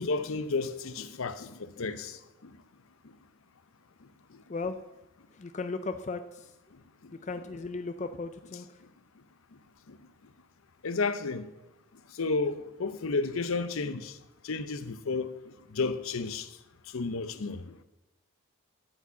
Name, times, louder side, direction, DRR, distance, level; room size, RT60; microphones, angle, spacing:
voice 1, 0.0-2.5 4.3-4.4 7.0-7.1 9.9-10.0 10.8-11.4 12.1-14.2 14.4-16.6 16.9-17.7, left 4 dB, 70° left, 0.7 m, -32 dB
voice 2, 4.5-4.8 5.3-6.5 7.2-8.8, left 3 dB, 35° left, 0.4 m, -36 dB
12.0 x 5.1 x 8.1 m
head